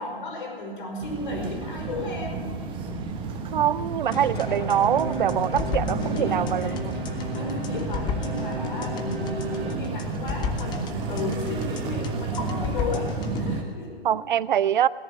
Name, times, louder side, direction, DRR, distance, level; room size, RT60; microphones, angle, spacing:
voice 1, 0.0-2.4 3.2-3.3 6.1-6.8 7.1-13.1 13.4-14.2, left 2 dB, 60° left, 1 dB, 5.3 m, -34 dB
sound 1, 1.0-13.6, right 4 dB, 15° right, 1.2 m, -32 dB
voice 2, 3.5-7.0 14.0-14.9, right 10 dB, 55° right, 20 dB, 0.5 m, -24 dB
sound 2, 4.1-13.5, left 6 dB, 15° left, 0.9 m, -34 dB
sound 3, 4.4-9.8, right 2 dB, 80° right, 2.8 m, -34 dB
17.0 x 10.5 x 7.2 m, 2.1 s
figure-of-eight pair, 130°, 30 cm